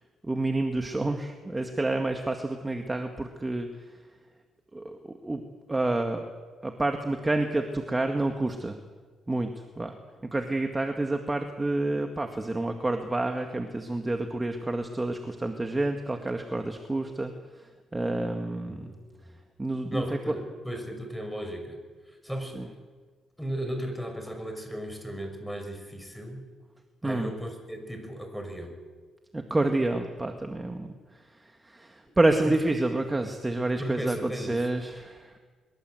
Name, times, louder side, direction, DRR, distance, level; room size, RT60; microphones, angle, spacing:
voice 1, 0.2-3.7 4.7-5.4 5.7-6.3 6.6-8.8 9.3-10.0 10.3-17.3 17.6-18.9 19.6-20.3 22.5-22.7 27.0-27.3 29.3-30.9 31.4-35.4, right 2 dB, 15° right, 4 dB, 2.0 m, -29 dB
voice 2, 18.7-19.4 19.9-21.8 22.1-22.7 23.4-26.4 27.0-28.8 32.4-32.5 33.8-34.6, equal, ahead, 5 dB, 5.9 m, -36 dB
23.5 x 22.0 x 8.0 m, 1.4 s
cardioid pair, 90°, 0 cm